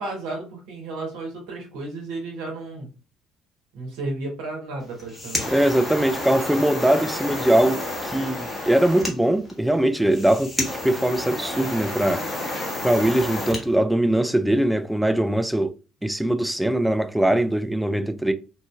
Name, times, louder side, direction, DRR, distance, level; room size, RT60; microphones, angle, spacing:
voice 1, 0.0-2.9 3.7-5.5, right 2 dB, 70° right, 1.0 m, -33 dB
sound 1, 4.8-13.6, left 2 dB, 10° left, 1.3 m, -30 dB
voice 2, 5.5-12.3 12.8-15.7 16.0-18.3, right 1 dB, 5° right, 0.4 m, -21 dB
2.6 x 2.5 x 2.4 m
hypercardioid pair, 55°, 0 cm